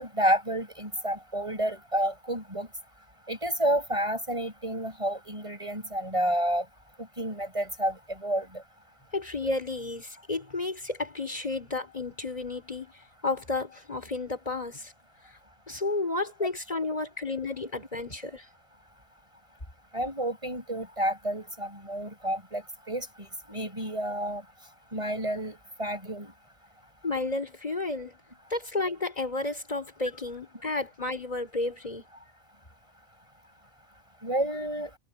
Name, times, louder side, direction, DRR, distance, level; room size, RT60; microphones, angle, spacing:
voice 1, 0.0-2.7 3.3-6.6 7.2-8.6 19.9-24.4 24.9-26.3 34.2-34.9, right 1 dB, 25° right, 8.1 m, -30 dB
voice 2, 9.1-12.9 13.2-14.9 15.7-18.5 27.0-28.2 28.5-32.0, left 2 dB, 30° left, 5.2 m, -32 dB
omnidirectional pair, 1.4 m